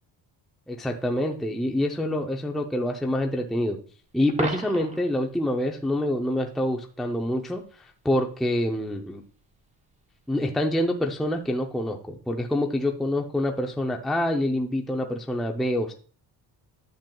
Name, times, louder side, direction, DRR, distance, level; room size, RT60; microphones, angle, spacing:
voice 1, 0.7-3.8 4.1-9.2 10.3-15.9, left 1 dB, ahead, 2 dB, 0.5 m, -26 dB
Coin (dropping), 4.3-5.1 11.2-11.4, right 2 dB, 15° right, 0.9 m, -33 dB
10.5 x 7.4 x 2.3 m, 0.42 s
cardioid pair, 145°, 42 cm